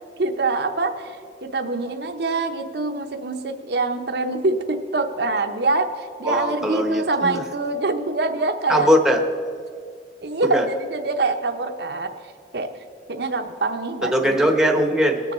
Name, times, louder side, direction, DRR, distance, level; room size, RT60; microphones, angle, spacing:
voice 1, 0.2-8.9 10.2-12.1 12.5-12.7 13.1-14.1 14.4-14.5, right 3 dB, 60° right, 6 dB, 0.8 m, -25 dB
voice 2, 6.2-7.4 8.7-9.2 10.4-10.6 14.1-15.2, equal, 5° right, 2 dB, 1.0 m, -20 dB
20.0 x 7.0 x 4.3 m, 2.2 s
head